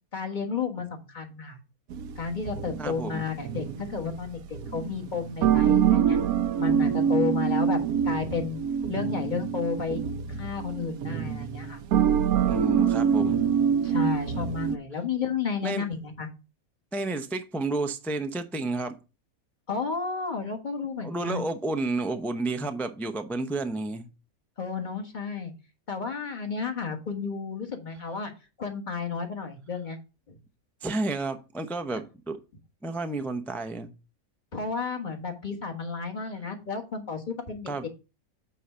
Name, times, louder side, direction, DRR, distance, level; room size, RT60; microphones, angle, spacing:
voice 1, 0.1-1.6 2.2-6.2 6.6-7.8 8.0-8.6 8.9-10.0 10.3-11.8 13.8-16.3 19.7-21.4 24.6-25.5 25.9-28.3 28.6-30.0 30.3-30.4 34.5-37.9, left 5 dB, 35° left, 4 dB, 1.6 m, -32 dB
sound 1, 1.9-14.8, right 8 dB, 90° right, 1.2 m, -26 dB
voice 2, 2.8-3.2 12.5-13.4 15.6-15.8 16.9-19.0 21.0-24.1 30.8-32.4 32.8-33.9 37.7-37.9, right 2 dB, 5° left, 8 dB, 0.3 m, -31 dB
8.5 x 3.9 x 5.5 m, 0.30 s
omnidirectional pair, 1.5 m